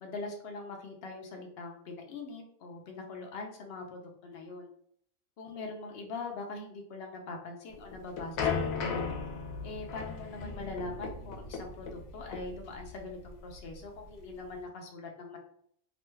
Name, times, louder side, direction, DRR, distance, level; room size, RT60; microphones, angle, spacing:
voice 1, 0.0-4.7 5.4-9.1 9.6-15.4, left 3 dB, 65° left, 2 dB, 0.7 m, -42 dB
sound 1, 7.7-14.6, left 5 dB, 85° left, 1.0 m, -36 dB
2.9 x 2.2 x 3.1 m, 0.66 s
omnidirectional pair, 1.4 m